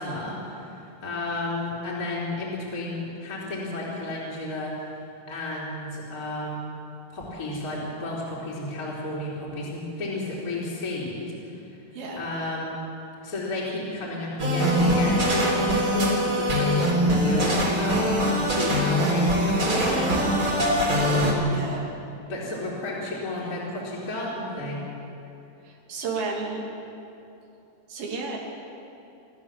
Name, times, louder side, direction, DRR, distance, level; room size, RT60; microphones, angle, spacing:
voice 1, 0.0-4.7 5.3-6.7 7.1-11.5 12.1-12.7 13.2-21.5 22.3-24.8, left 2 dB, 25° left, -6 dB, 4.1 m, -33 dB
sound 1, 14.4-21.3, equal, 35° right, 4.1 m, -22 dB
voice 2, 21.5-21.9 25.6-26.7 27.9-28.4, right 4 dB, 85° right, -1 dB, 4.4 m, -32 dB
28.0 x 13.5 x 7.3 m, 2.8 s
omnidirectional pair, 4.1 m